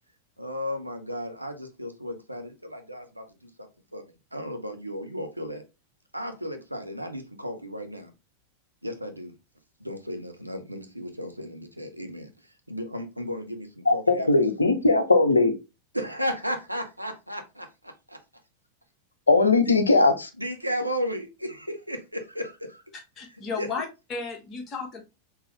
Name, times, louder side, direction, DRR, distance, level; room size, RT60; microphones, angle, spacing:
voice 1, 0.4-3.5 3.9-5.6 6.1-8.1 8.8-9.3 9.8-12.3 12.7-14.5 15.9-18.2 19.6-19.7 20.4-22.8 23.6-23.7, equal, 90° right, 0.6 m, -34 dB
voice 2, 13.9-15.5 19.3-20.3, left 3 dB, 80° left, 0.5 m, -19 dB
voice 3, 23.2-25.0, left 4 dB, 30° left, 1.0 m, -34 dB
3.8 x 2.9 x 3.1 m
figure-of-eight pair, 90°, 0 cm